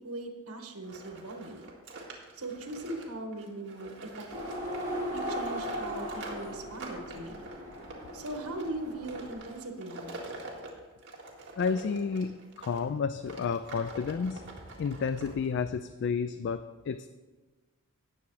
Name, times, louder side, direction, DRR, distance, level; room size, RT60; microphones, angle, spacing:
voice 1, 0.0-1.7 2.3-4.6 5.1-7.4 8.1-10.2, right 2 dB, 75° right, 4 dB, 1.5 m, -40 dB
sound 1, 0.8-12.8 13.2-15.7, right 2 dB, 55° right, 2.0 m, -46 dB
sound 2, 4.3-9.3, equal, 15° right, 3.3 m, -38 dB
voice 2, 11.6-14.4 14.8-17.1, left 5 dB, 50° left, 11 dB, 0.3 m, -31 dB
18.0 x 7.1 x 3.3 m, 1.2 s
head